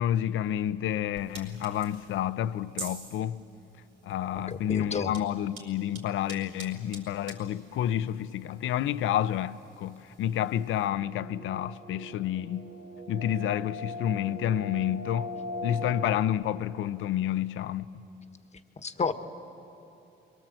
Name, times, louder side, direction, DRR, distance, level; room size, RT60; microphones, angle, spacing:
voice 1, 0.0-3.4 4.0-12.8 13.1-15.3 15.6-18.1, left 11 dB, 80° left, 0.7 m, -29 dB
sound 1, 1.1-10.9, right 3 dB, 75° right, 4.6 m, -48 dB
voice 2, 4.3-5.1 18.8-19.1, left 5 dB, 35° left, 1.4 m, -31 dB
sound 2, 11.0-16.2, left 1 dB, 50° right, 1.2 m, -40 dB
29.5 x 22.5 x 7.7 m
cardioid pair, 90°, 20 cm